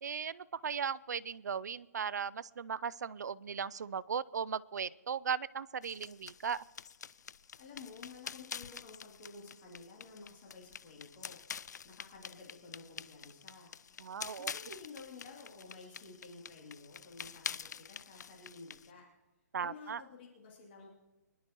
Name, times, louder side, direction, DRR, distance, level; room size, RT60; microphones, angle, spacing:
voice 1, 0.0-6.7 14.0-14.5 19.5-20.0, right 7 dB, 80° right, 20 dB, 0.5 m, -37 dB
sound 1, 5.8-18.9, left 7 dB, 80° left, 0.4 m, -47 dB
voice 2, 7.6-11.4 11.8-19.0 19.6-21.0, left 4 dB, 35° left, -3 dB, 2.8 m, -52 dB
24.5 x 11.5 x 3.0 m, 1.1 s
hypercardioid pair, 160°, 9 cm